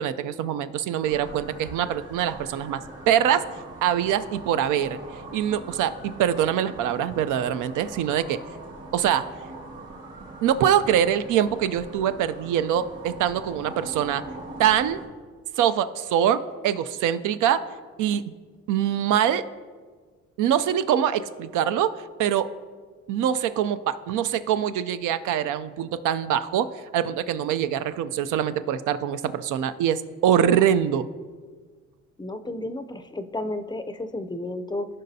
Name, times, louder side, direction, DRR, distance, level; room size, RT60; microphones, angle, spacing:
voice 1, 0.0-3.5 3.8-5.0 5.3-8.4 8.9-9.3 10.4-14.2 14.6-15.0 15.6-17.6 18.0-18.2 18.7-19.4 20.4-21.9 22.2-22.5 23.1-31.1, right 9 dB, 85° right, 13 dB, 0.5 m, -24 dB
sound 1, 1.0-15.1, right 2 dB, 55° right, 1.8 m, -42 dB
voice 2, 32.2-34.9, left 1 dB, 15° left, 9 dB, 0.4 m, -32 dB
15.0 x 5.4 x 2.7 m, 1.5 s
cardioid pair, 90°, 30 cm